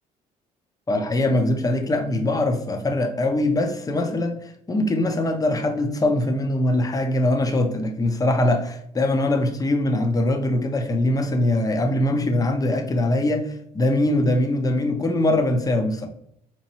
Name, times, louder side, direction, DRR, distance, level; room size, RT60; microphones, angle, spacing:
voice 1, 0.9-16.1, left 1 dB, 20° left, 0.7 m, -22 dB
4.3 x 3.0 x 2.8 m
supercardioid pair, 65°, 17 cm